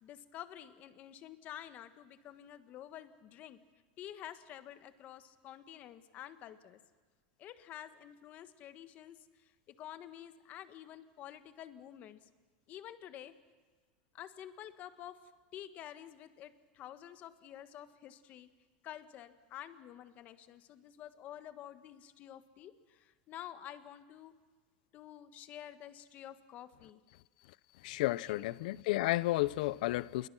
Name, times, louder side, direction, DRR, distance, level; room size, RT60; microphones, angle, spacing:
voice 1, 0.0-3.6 4.0-6.8 7.4-12.3 12.7-13.3 14.1-18.5 18.8-24.3 24.9-27.0 28.3-28.5, left 11 dB, 35° left, 1.4 m, -49 dB
voice 2, 27.8-30.3, left 18 dB, 65° left, 0.6 m, -32 dB
28.0 x 23.0 x 6.1 m
supercardioid pair, 160°, 5 cm